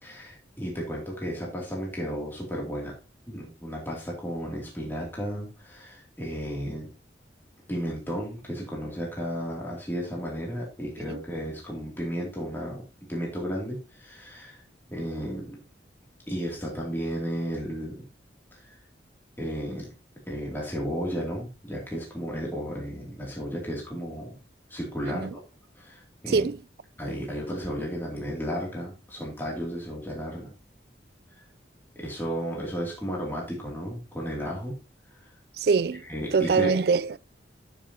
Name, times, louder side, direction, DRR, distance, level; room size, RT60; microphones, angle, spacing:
voice 1, 0.0-2.9 3.3-6.9 7.7-12.8 13.1-14.6 14.9-15.6 16.3-17.9 19.4-19.9 20.3-24.3 24.7-25.3 25.8-26.5 27.0-30.5 32.0-34.7 36.1-36.7, equal, 10° left, 2.7 m, -33 dB
voice 2, 25.0-25.3 26.3-26.6 35.6-36.0 36.3-37.2, right 5 dB, 55° right, 0.4 m, -24 dB
12.5 x 6.5 x 2.9 m
head